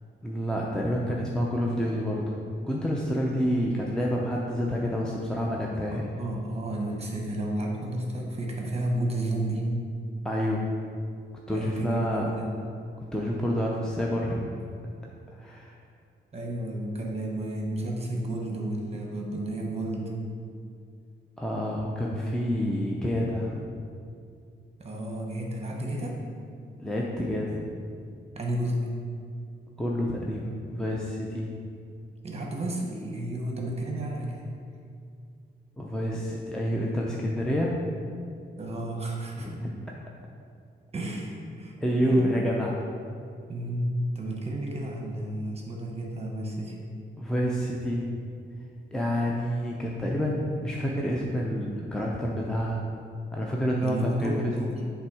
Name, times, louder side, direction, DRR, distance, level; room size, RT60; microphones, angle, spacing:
voice 1, 0.2-2.4 2.6-6.0 10.2-10.7 11.5-12.3 13.1-14.6 15.4-15.8 21.4-23.7 26.8-27.6 29.8-31.5 35.8-37.7 39.4-39.7 41.8-42.7 47.2-48.1 48.9-52.8 53.3-54.5, equal, 5° left, -3 dB, 0.6 m, -28 dB
voice 2, 5.9-9.7 11.5-12.5 16.3-20.1 24.8-26.2 28.4-28.9 32.2-34.5 38.6-39.5 40.9-41.7 42.0-42.4 43.5-46.8 53.8-54.9, right 1 dB, 30° right, 0 dB, 1.1 m, -32 dB
7.3 x 3.5 x 4.8 m, 2.3 s
cardioid pair, 95°, 19 cm